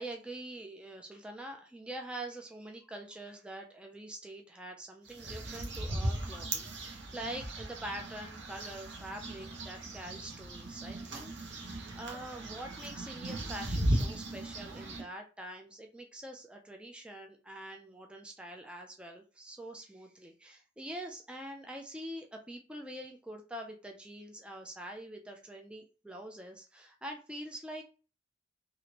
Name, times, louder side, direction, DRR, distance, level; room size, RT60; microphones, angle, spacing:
voice 1, 0.0-27.8, right 1 dB, 5° right, 3 dB, 0.3 m, -45 dB
sound 1, 5.1-15.0, right 1 dB, 65° right, 0.8 m, -37 dB
3.0 x 2.5 x 2.8 m, 0.35 s
head